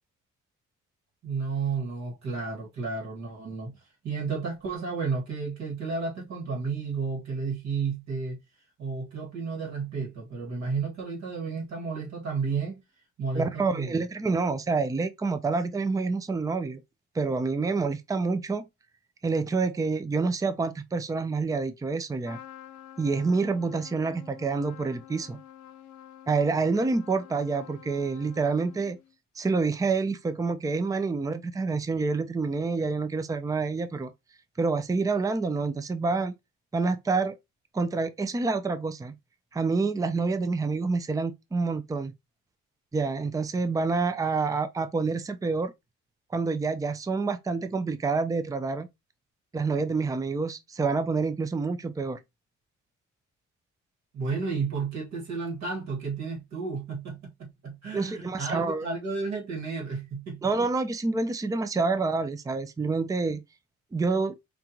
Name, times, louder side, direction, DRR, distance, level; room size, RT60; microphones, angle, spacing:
voice 1, 1.2-3.8 4.0-8.4 8.8-12.8 13.2-14.0 54.1-60.7, right 4 dB, 65° right, 2.0 m, -32 dB
voice 2, 13.4-16.8 17.1-18.7 19.2-22.4 23.0-25.4 26.3-29.0 29.4-34.1 34.6-36.3 36.7-37.3 37.7-39.1 39.5-42.1 42.9-45.7 46.3-48.9 49.5-52.2 57.9-58.9 60.4-63.4 63.9-64.3, right 4 dB, 10° right, 0.5 m, -27 dB
Trumpet, 22.2-29.1, left 11 dB, 80° left, 0.7 m, -48 dB
5.1 x 2.5 x 2.9 m
cardioid pair, 90°, 30 cm